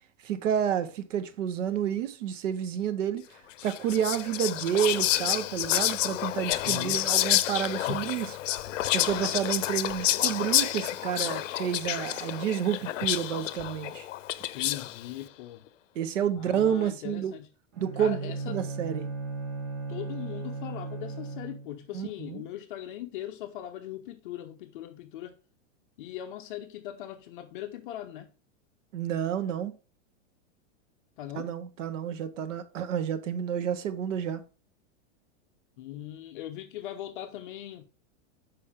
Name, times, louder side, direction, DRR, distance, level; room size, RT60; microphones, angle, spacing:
voice 1, 0.2-3.2 3.6-8.4 8.9-14.1 15.9-17.3 17.8-19.1 21.9-22.4 28.9-29.7 31.3-34.4, right 9 dB, 80° right, 1.0 m, -30 dB
Whispering, 3.6-15.0, left 14 dB, 85° left, 0.6 m, -29 dB
voice 2, 6.6-7.1 14.5-15.7 16.4-17.5 18.0-18.6 19.9-25.4 26.0-28.3 31.2-31.5 35.8-37.8, left 12 dB, 45° left, 0.7 m, -40 dB
Bowed string instrument, 17.7-21.8, right 3 dB, 35° right, 1.2 m, -36 dB
6.9 x 5.1 x 3.5 m
supercardioid pair, 170°, 37 cm